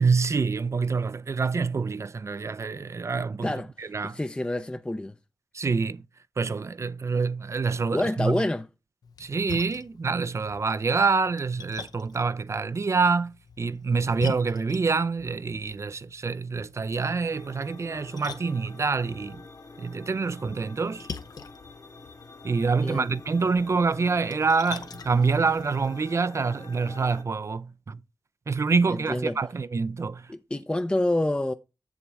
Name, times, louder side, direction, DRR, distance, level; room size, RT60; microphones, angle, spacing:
voice 1, 0.0-4.2 5.5-6.0 6.4-8.4 9.2-19.4 19.8-21.1 22.4-28.0 28.5-30.3, right 4 dB, 45° right, 0.4 m, -26 dB
voice 2, 3.4-5.1 7.9-8.7 22.8-23.1 28.9-29.4 30.3-31.5, left 1 dB, 15° left, 0.5 m, -28 dB
Splash splatter, 9.0-26.1, left 5 dB, 75° left, 0.7 m, -45 dB
sound 1, 17.3-27.2, left 3 dB, 60° left, 1.2 m, -47 dB
7.2 x 7.1 x 3.4 m
cardioid pair, 60°, 7 cm